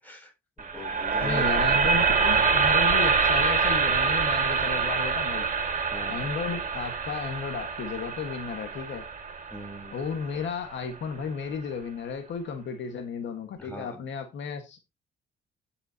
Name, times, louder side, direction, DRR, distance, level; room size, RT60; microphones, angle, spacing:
voice 1, 0.0-1.8 5.9-6.3 9.5-10.0 13.6-14.0, left 1 dB, 10° left, 7.0 m, -41 dB
sound 1, 0.6-10.7, right 5 dB, 40° right, 2.3 m, -25 dB
voice 2, 1.2-5.5 6.1-9.1 9.9-14.8, left 6 dB, 70° left, 1.7 m, -33 dB
14.5 x 6.7 x 2.9 m
cardioid pair, 90°, 20 cm